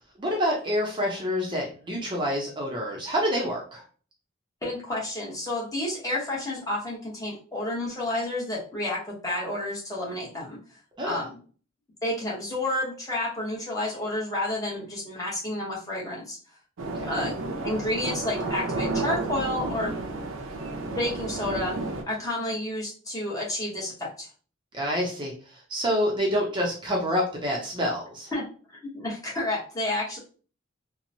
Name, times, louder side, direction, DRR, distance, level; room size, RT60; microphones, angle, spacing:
voice 1, 0.2-3.8 11.0-11.2 16.9-17.3 24.7-28.3, equal, 25° right, -1 dB, 0.5 m, -27 dB
voice 2, 4.6-10.6 11.0-11.4 12.0-16.4 17.1-19.9 21.0-21.7 22.1-24.3 28.3-28.4 28.7-30.2, left 1 dB, 20° left, -5 dB, 0.9 m, -30 dB
sound 1, 16.8-22.0, right 3 dB, 80° right, 0.5 m, -31 dB
2.9 x 2.0 x 2.6 m, 0.40 s
head